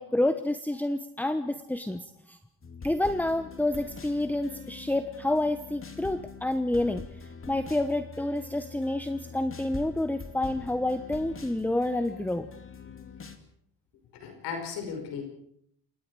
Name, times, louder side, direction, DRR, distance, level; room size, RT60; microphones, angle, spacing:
voice 1, 0.0-2.4 2.8-7.0 7.5-12.5, left 1 dB, 5° left, 10 dB, 1.1 m, -28 dB
sound 1, 2.6-13.4, left 5 dB, 35° left, 2.8 m, -44 dB
voice 2, 14.1-15.2, left 6 dB, 90° left, 4 dB, 5.6 m, -36 dB
27.5 x 22.0 x 4.9 m, 0.67 s
cardioid pair, 90°, 39 cm